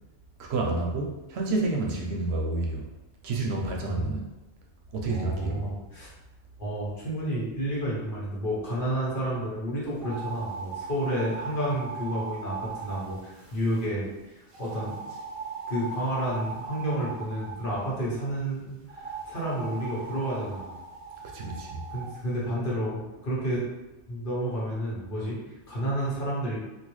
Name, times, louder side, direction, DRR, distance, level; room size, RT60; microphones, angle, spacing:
voice 1, 0.4-2.9 3.2-4.3 4.9-5.8 21.2-21.8, right 2 dB, 70° right, 0 dB, 0.8 m, -29 dB
voice 2, 3.9-4.2 5.1-6.1 6.6-15.0 15.7-20.8 21.9-23.6 24.1-26.6, right 1 dB, 50° left, -6 dB, 1.1 m, -31 dB
sound 1, 10.0-13.9 14.5-17.8 18.9-22.1, right 4 dB, 40° right, 0.5 m, -39 dB
3.8 x 2.3 x 3.0 m, 1.0 s
omnidirectional pair, 1.2 m